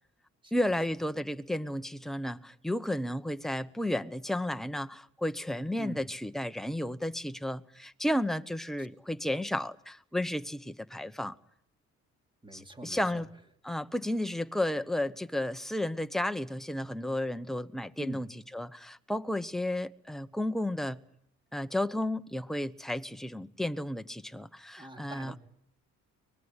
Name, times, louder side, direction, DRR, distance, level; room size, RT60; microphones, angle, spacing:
voice 1, 0.5-11.3 12.5-13.3 13.6-18.3 18.5-21.0 21.5-25.3, left 1 dB, ahead, 1.0 m, -33 dB
voice 2, 5.8-6.1 12.4-13.2 18.0-18.3 24.7-25.4, right 1 dB, 15° right, 2.7 m, -43 dB
24.0 x 20.5 x 10.0 m
cardioid pair, 90°, 30 cm